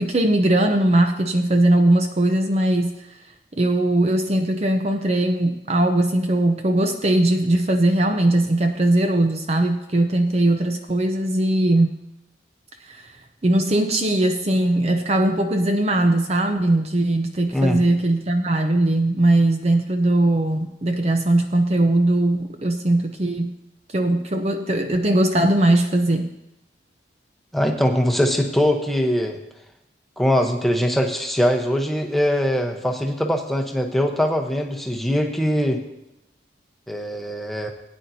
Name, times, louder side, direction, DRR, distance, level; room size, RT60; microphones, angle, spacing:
voice 1, 0.0-2.9 3.6-12.0 12.9-13.0 13.4-23.5 23.9-26.3, right 1 dB, 35° right, 5 dB, 0.6 m, -20 dB
voice 2, 17.5-17.8 27.5-29.4 30.2-35.8 36.9-37.7, equal, ahead, 2 dB, 0.9 m, -22 dB
18.5 x 9.3 x 2.8 m, 0.91 s
head